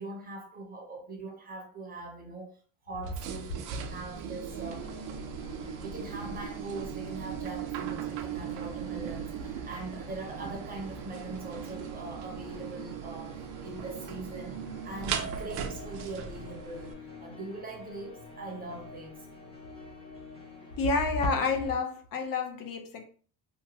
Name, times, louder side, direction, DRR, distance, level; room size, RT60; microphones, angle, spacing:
voice 1, 0.0-2.6 2.9-4.9 5.8-17.0 17.2-19.2, right 2 dB, 25° right, 0.6 m, -42 dB
sound 1, 3.0-16.9, right 8 dB, 80° right, 0.6 m, -38 dB
sound 2, 4.5-21.7, left 2 dB, 15° left, 0.7 m, -49 dB
voice 2, 20.8-23.1, left 3 dB, 60° left, 0.6 m, -29 dB
2.9 x 2.2 x 2.7 m
cardioid pair, 130°, 38 cm